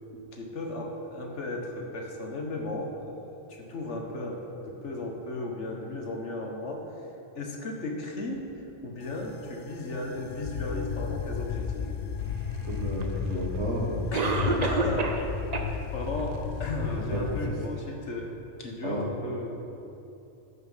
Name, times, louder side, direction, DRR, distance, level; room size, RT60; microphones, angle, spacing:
voice 1, 0.3-6.8 7.3-11.9 14.1-15.2 15.6-18.3 18.6-19.8, left 2 dB, 80° left, 1 dB, 1.7 m, -35 dB
sound 1, 9.0-17.5, left 7 dB, 60° left, 0.7 m, -34 dB
voice 2, 12.6-14.0 16.9-17.4 18.8-19.1, right 1 dB, 75° right, -2 dB, 1.9 m, -32 dB
Cough, 13.0-13.1 14.1-15.3 15.5-15.6 16.2-16.3 16.8-16.9, right 4 dB, 40° right, 0.7 m, -27 dB
14.0 x 5.7 x 5.7 m, 2.8 s
omnidirectional pair, 1.2 m